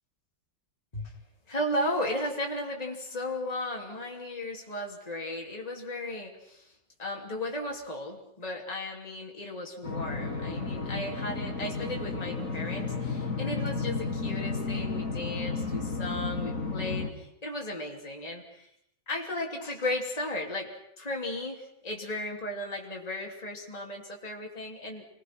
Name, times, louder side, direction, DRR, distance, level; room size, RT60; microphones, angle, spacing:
voice 1, 1.5-6.7 7.0-18.7 19.1-25.1, left 1 dB, 20° left, 0 dB, 3.2 m, -35 dB
sound 1, 9.8-17.1, left 4 dB, 50° left, 2.7 m, -32 dB
28.5 x 22.0 x 6.1 m, 0.74 s
omnidirectional pair, 1.9 m